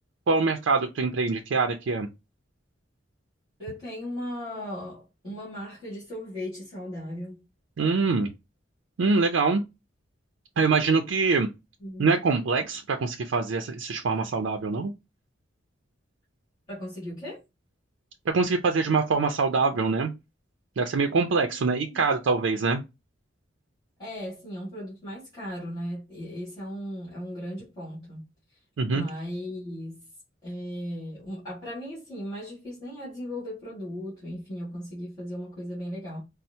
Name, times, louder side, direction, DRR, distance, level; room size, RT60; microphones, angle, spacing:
voice 1, 0.3-2.1 7.8-8.3 9.0-9.6 10.6-11.5 12.0-14.9 18.3-20.1 20.8-22.8 28.8-29.0, right 4 dB, 85° right, 0.4 m, -24 dB
voice 2, 3.6-7.4 11.8-12.1 16.7-17.4 21.4-22.0 24.0-28.2 28.9-30.0 30.4-36.2, equal, 20° left, 1.8 m, -37 dB
4.2 x 2.0 x 2.7 m
head